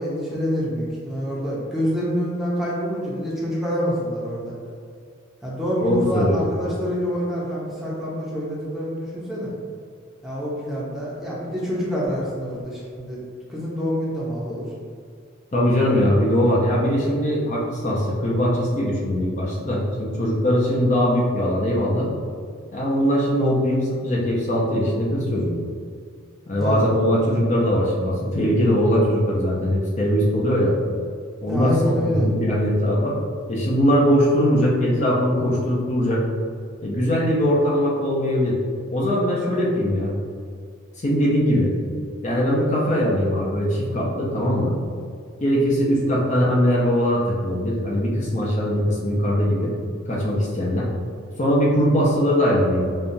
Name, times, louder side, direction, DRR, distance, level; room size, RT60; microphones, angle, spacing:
voice 1, 0.0-4.6 5.4-9.5 10.2-13.2 13.5-14.7 26.6-26.9 31.5-32.3, equal, ahead, -7 dB, 0.7 m, -26 dB
voice 2, 5.8-6.4 15.5-22.1 22.7-25.6 26.5-30.7 31.4-33.2 33.5-36.2 36.8-38.6 38.9-40.1 41.0-41.7 42.2-44.8 45.4-49.7 50.1-50.9 51.4-52.9, equal, 35° left, -4 dB, 0.6 m, -21 dB
5.4 x 2.3 x 2.6 m, 2.2 s
head